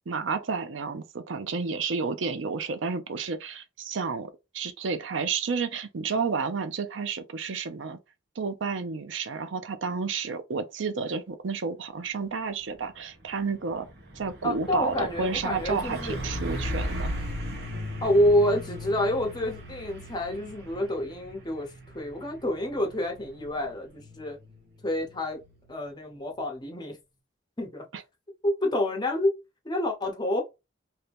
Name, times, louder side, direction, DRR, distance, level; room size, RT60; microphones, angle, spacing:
voice 1, 0.1-8.0 8.4-13.9 14.1-17.1 27.9-28.0, right 5 dB, 75° right, 0.5 m, -31 dB
Truck, 12.6-12.9 13.2-25.8, equal, 60° right, 1.1 m, -38 dB
voice 2, 14.4-16.2 18.0-24.4 24.8-25.4 25.7-27.0 27.6-27.8 28.4-29.3 29.6-30.4, left 1 dB, 20° left, 0.9 m, -28 dB
2.8 x 2.7 x 3.4 m
head